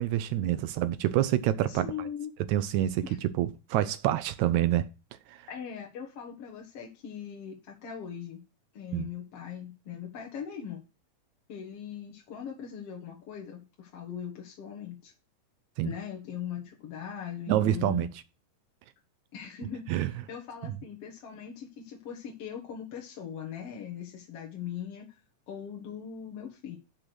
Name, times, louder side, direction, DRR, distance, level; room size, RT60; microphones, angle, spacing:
voice 1, 0.0-1.9 2.5-4.9 5.3-5.4 8.9-9.1 15.8-15.9 17.5-18.1 19.9-20.1 20.6-20.8, right 13 dB, 80° right, 1.7 m, -27 dB
voice 2, 1.7-2.3 3.0-3.2 5.5-8.4 8.7-10.8 11.5-15.1 15.8-18.1 19.3-25.1 25.5-26.8, left 8 dB, 55° left, 2.1 m, -40 dB
6.6 x 6.2 x 6.0 m
omnidirectional pair, 3.8 m